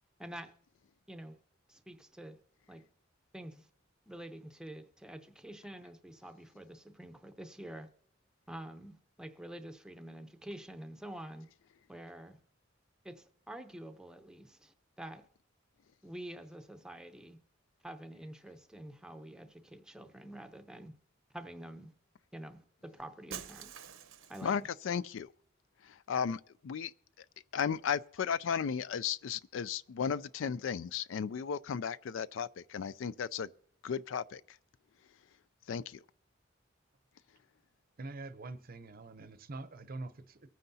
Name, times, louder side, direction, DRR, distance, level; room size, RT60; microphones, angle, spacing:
voice 1, 0.2-0.6 1.1-1.4 1.7-2.4 2.7-2.9 3.3-3.7 4.1-7.9 8.5-11.5 11.9-12.4 13.0-15.3 16.0-17.4 17.8-21.0 21.3-21.9 22.3-23.8 24.3-24.7, right 1 dB, 5° right, 0.7 m, -47 dB
Shatter, 23.3-24.6, right 8 dB, 90° right, 0.9 m, -46 dB
voice 2, 24.4-25.3 25.9-26.9 27.5-33.5 33.8-34.4 35.7-36.0, left 7 dB, 70° left, 0.4 m, -35 dB
voice 3, 38.0-40.5, right 2 dB, 45° right, 0.7 m, -44 dB
24.0 x 9.2 x 2.8 m
head